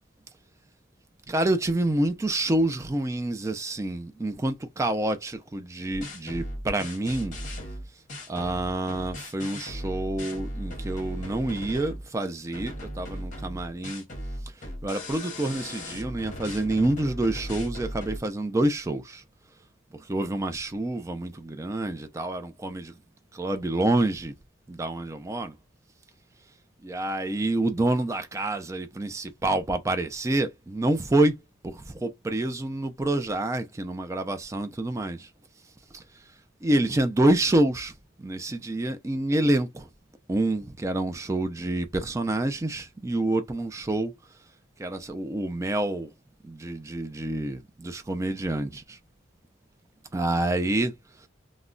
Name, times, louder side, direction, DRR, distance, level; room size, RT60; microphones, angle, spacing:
voice 1, 1.3-7.3 8.3-14.0 14.8-19.2 20.1-22.9 23.3-24.3 24.7-25.5 26.8-31.4 31.7-35.3 36.6-37.9 38.2-39.9 40.3-44.1 44.8-46.1 46.4-49.0 50.1-50.9, right 1 dB, 15° right, 0.3 m, -27 dB
sound 1, 5.9-12.1 12.5-18.2, equal, 40° left, 0.8 m, -37 dB
2.2 x 2.1 x 3.7 m
head